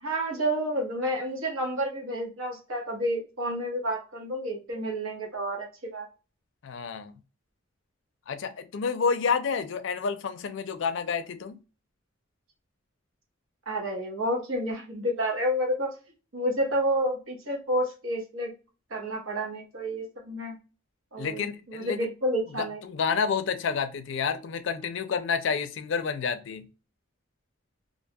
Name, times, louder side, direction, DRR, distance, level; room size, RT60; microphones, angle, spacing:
voice 1, 0.0-6.1 13.7-15.9 16.3-18.5 18.9-20.6 21.1-22.8, equal, 90° right, 0 dB, 0.9 m, -30 dB
voice 2, 6.6-7.2 8.3-11.6 21.2-22.0 22.6-26.7, left 6 dB, 65° left, 10 dB, 0.4 m, -29 dB
2.6 x 2.2 x 2.6 m, 0.33 s
head